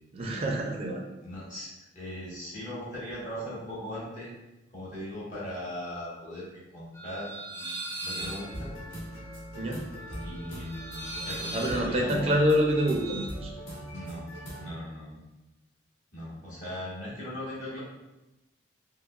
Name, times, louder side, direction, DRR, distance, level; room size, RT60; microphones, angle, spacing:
voice 1, 0.1-1.0 9.6-9.8 11.5-13.5, equal, 30° right, 1 dB, 0.4 m, -26 dB
voice 2, 1.2-1.7 1.9-4.3 4.7-8.7 10.2-12.4 13.5-13.6 13.9-14.3 14.6-15.2 16.1-17.8, left 1 dB, 40° left, -8 dB, 1.2 m, -39 dB
sound 1, 6.9-13.3, right 2 dB, 15° left, 0.8 m, -40 dB
sound 2, 8.2-14.7, equal, 70° left, 1.4 m, -40 dB
5.0 x 2.0 x 2.3 m, 1.0 s
head